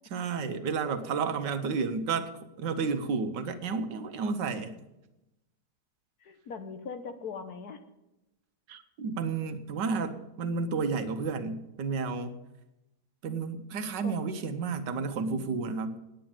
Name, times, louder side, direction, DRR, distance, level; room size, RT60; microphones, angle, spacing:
voice 1, 0.1-2.3 2.6-4.7 8.7-12.4 13.2-16.0, right 5 dB, 80° right, 9 dB, 1.6 m, -31 dB
voice 2, 6.2-7.8 14.0-14.1 15.2-16.0, left 5 dB, 60° left, 8 dB, 1.5 m, -41 dB
9.2 x 9.2 x 8.8 m, 0.94 s
omnidirectional pair, 1.9 m